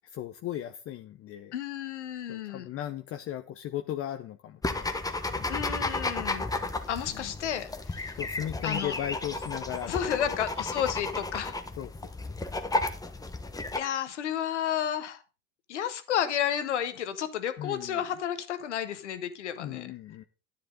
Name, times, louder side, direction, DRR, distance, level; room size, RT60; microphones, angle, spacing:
voice 1, 0.0-1.5 2.3-5.5 7.1-7.3 8.2-10.4 11.8-12.1 17.6-18.0 19.6-20.2, left 11 dB, 40° left, 0.9 m, -37 dB
voice 2, 1.5-2.7 5.5-6.4 6.9-8.2 8.6-8.9 9.9-11.5 13.7-15.2 15.7-19.9, left 9 dB, 85° left, 1.4 m, -32 dB
sound 1, 4.6-13.8, left 2 dB, 10° left, 1.2 m, -33 dB
10.0 x 10.0 x 3.9 m
hypercardioid pair, 85°, 34 cm